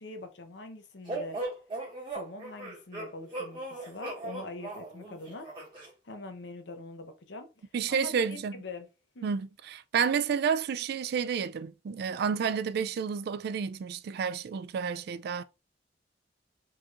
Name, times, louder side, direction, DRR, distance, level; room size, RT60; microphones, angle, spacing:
voice 1, 0.0-1.4 2.1-5.5 6.0-7.5 7.9-8.9 9.1-9.3, left 2 dB, 70° left, 0.8 m, -43 dB
sound 1, 1.1-5.9, right 2 dB, 25° right, 1.8 m, -38 dB
voice 2, 7.7-8.5 9.2-15.4, right 6 dB, 60° right, 0.3 m, -30 dB
4.6 x 2.9 x 2.4 m
head